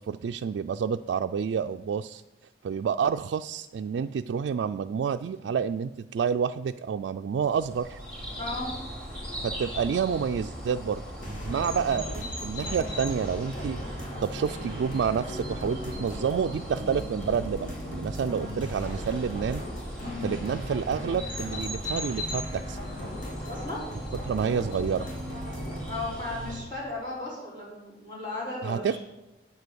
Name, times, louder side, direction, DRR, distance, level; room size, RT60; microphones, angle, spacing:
voice 1, 0.0-2.2 2.6-8.0 9.4-11.0 11.5-13.8 14.2-19.6 20.2-22.8 24.2-25.1 28.6-29.0, right 6 dB, 85° right, 6 dB, 0.3 m, -29 dB
sound 1, 7.4-26.6, equal, 5° left, 3.3 m, -39 dB
voice 2, 8.4-8.7 20.0-20.3 23.5-23.8 25.8-29.0, left 2 dB, 30° left, -8 dB, 4.2 m, -35 dB
sound 2, 11.2-26.0, equal, 45° left, 2.8 m, -38 dB
8.4 x 8.2 x 6.8 m, 1.0 s
head